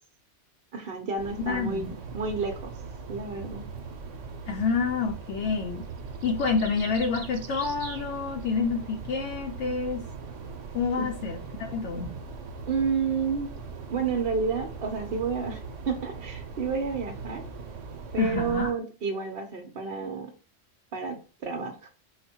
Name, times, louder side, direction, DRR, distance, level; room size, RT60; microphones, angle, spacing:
voice 1, 0.7-2.7 3.1-3.6 11.0-11.1 12.7-13.5 13.9-15.6 15.9-17.5 18.1-20.3 20.9-21.9, right 5 dB, 55° right, 0.8 m, -30 dB
sound 1, 1.2-18.7, right 4 dB, 80° right, 1.1 m, -40 dB
voice 2, 1.4-2.0 4.5-5.9 6.2-10.1 10.7-12.2 18.2-18.7, left 5 dB, 75° left, 0.9 m, -28 dB
4.8 x 2.2 x 4.3 m
omnidirectional pair, 1.2 m